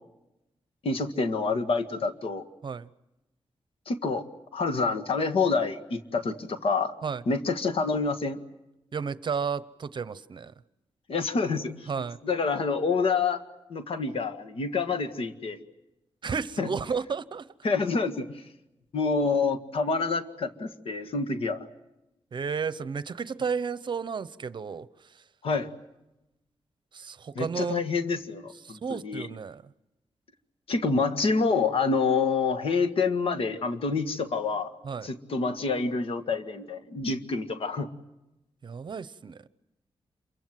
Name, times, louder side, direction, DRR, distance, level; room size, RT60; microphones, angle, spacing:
voice 1, 0.8-2.4 3.9-4.2 4.5-6.9 7.3-8.4 11.1-11.9 12.2-13.4 13.7-15.6 16.6-16.7 17.6-18.5 18.9-21.7 25.4-25.7 27.4-29.3 30.7-34.7 35.0-37.9, left 4 dB, 70° left, 8 dB, 1.9 m, -27 dB
voice 2, 8.9-10.5 11.9-12.2 16.2-17.5 22.3-25.2 26.9-27.8 28.6-29.7 34.8-35.1 38.6-39.4, right 6 dB, 50° right, 16 dB, 0.9 m, -33 dB
27.5 x 23.5 x 7.7 m, 0.94 s
wide cardioid pair, 110°, 10 cm